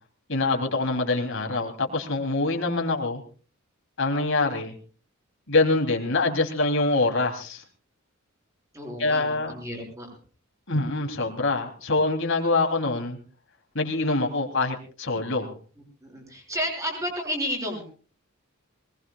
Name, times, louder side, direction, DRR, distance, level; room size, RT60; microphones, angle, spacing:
voice 1, 0.3-3.2 4.0-4.7 5.5-7.6 9.0-9.5 10.7-13.2 13.7-15.5, left 2 dB, 60° left, 3 dB, 3.4 m, -25 dB
voice 2, 8.7-10.1 16.0-17.8, equal, 15° right, 1 dB, 6.5 m, -31 dB
23.0 x 20.5 x 2.5 m, 0.38 s
head